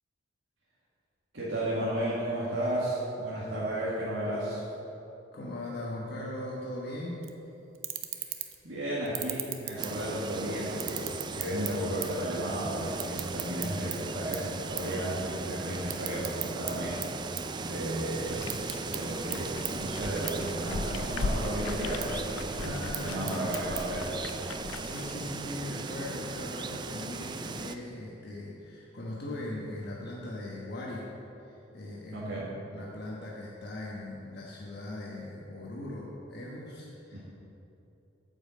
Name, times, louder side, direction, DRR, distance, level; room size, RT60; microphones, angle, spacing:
voice 1, 1.3-4.6 8.6-17.0 17.6-18.5 18.9-24.1 32.1-32.5 37.1-37.2, right 1 dB, 70° right, -8 dB, 1.8 m, -33 dB
voice 2, 5.3-7.3 22.6-23.6 24.8-31.1 31.4-32.4 32.7-37.2, left 1 dB, 55° left, -4 dB, 1.2 m, -39 dB
sound 1, 7.2-7.4 7.7-8.7 9.0-10.3 10.7-12.3 12.5-14.0 14.3-14.5 14.8-15.0 15.3-16.7 17.0-18.0 18.3-19.0 19.3-19.4 19.6-19.7 20.3-20.4 20.7-21.3 21.8-22.1 22.7-23.8, right 13 dB, 90° right, 0.7 m, -36 dB
sound 2, 9.8-27.7, right 3 dB, 25° right, 0.3 m, -38 dB
sound 3, 18.2-25.1, left 3 dB, 80° left, 0.5 m, -39 dB
9.1 x 5.5 x 7.4 m, 3.0 s
head